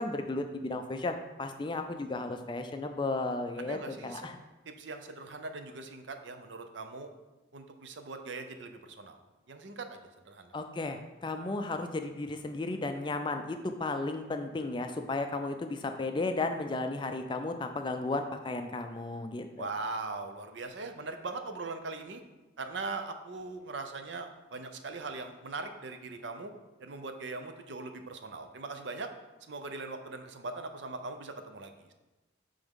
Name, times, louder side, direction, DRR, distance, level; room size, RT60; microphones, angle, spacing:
voice 1, 0.0-4.4 10.5-19.7, left 2 dB, 25° left, 7 dB, 0.4 m, -34 dB
voice 2, 3.6-4.3 4.7-7.1 7.5-9.2 9.5-10.5 19.5-22.2 22.6-26.5 26.8-29.1 29.5-31.9, right 3 dB, 70° right, 7 dB, 0.6 m, -40 dB
8.8 x 3.5 x 3.6 m, 1.1 s
head